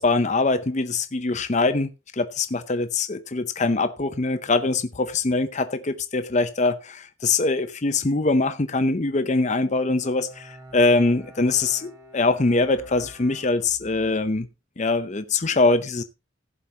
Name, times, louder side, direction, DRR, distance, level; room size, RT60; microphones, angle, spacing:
voice 1, 0.0-14.5 14.8-16.0, left 3 dB, 35° left, 0.6 m, -23 dB
Bowed string instrument, 9.7-14.1, right 1 dB, 15° right, 2.6 m, -48 dB
17.0 x 7.3 x 2.9 m
head